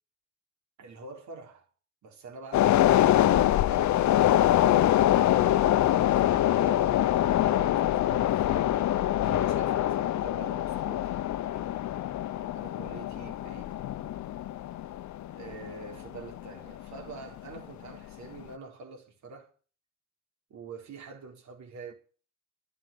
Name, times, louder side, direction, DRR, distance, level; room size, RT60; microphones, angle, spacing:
voice 1, 0.8-1.7 2.0-4.0 4.6-11.3 11.6-11.7 12.5-13.8 15.3-19.5 20.5-21.9, right 4 dB, 70° right, 4.1 m, -46 dB
sound 1, 2.5-17.1 17.4-17.6, left 13 dB, 65° left, 0.8 m, -25 dB
12.0 x 7.6 x 8.5 m
cardioid pair, 90°, 30 cm